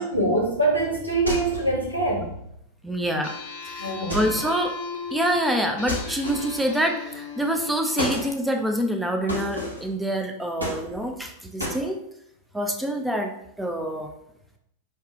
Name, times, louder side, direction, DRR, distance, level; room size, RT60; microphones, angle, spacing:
voice 1, 0.0-2.3 3.8-4.4, right 2 dB, 90° left, -3 dB, 1.3 m, -24 dB
sound 1, 1.3-1.8 4.1-4.6 5.9-6.7 8.0-8.3 9.3-9.9 10.6-11.2 11.6-11.8, equal, 85° right, 1.0 m, -31 dB
voice 2, 2.8-3.3 3.7-4.7 5.1-12.0 12.5-13.3 13.6-14.1, equal, 5° right, 4 dB, 0.6 m, -26 dB
sound 2, 3.2-8.3, left 5 dB, 55° left, 0.8 m, -37 dB
5.5 x 2.4 x 3.5 m, 0.76 s
figure-of-eight pair, 90°, 0 cm